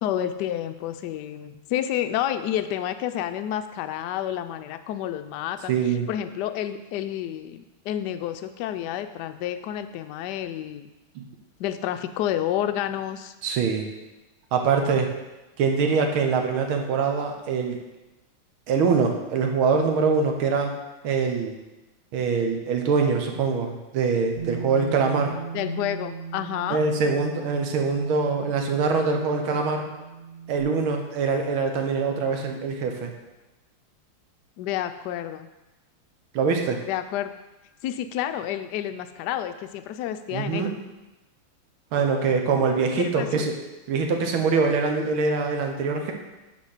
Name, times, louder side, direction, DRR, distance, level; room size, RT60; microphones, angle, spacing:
voice 1, 0.0-10.9 11.6-13.3 25.5-26.8 34.6-35.5 36.8-37.3 37.8-40.8 43.0-43.4, left 11 dB, 80° left, 9 dB, 0.9 m, -30 dB
voice 2, 5.7-6.1 11.1-11.2 13.4-13.8 14.5-15.1 15.6-17.8 18.7-20.7 21.0-21.5 22.1-25.3 26.7-29.8 30.5-33.1 36.3-36.8 40.3-40.7 41.9-43.5 43.9-46.1, right 5 dB, 75° right, 4 dB, 1.8 m, -23 dB
Bass guitar, 24.4-30.6, right 6 dB, 40° right, 1.3 m, -38 dB
9.4 x 4.4 x 5.7 m, 1.0 s
omnidirectional pair, 2.3 m